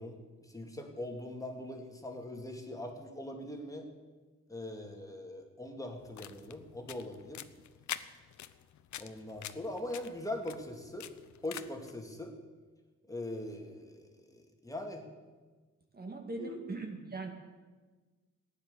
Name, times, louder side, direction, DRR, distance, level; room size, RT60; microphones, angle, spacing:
voice 1, 0.0-3.9 4.5-7.4 9.0-11.1 11.4-12.3 13.1-15.1 16.4-16.6, left 1 dB, 10° left, 2 dB, 2.3 m, -41 dB
sound 1, 6.0-11.9, left 12 dB, 70° left, 0.8 m, -46 dB
voice 2, 15.9-17.3, right 3 dB, 30° right, 3 dB, 2.0 m, -40 dB
15.0 x 10.0 x 6.9 m, 1.3 s
cardioid pair, 90°, 30 cm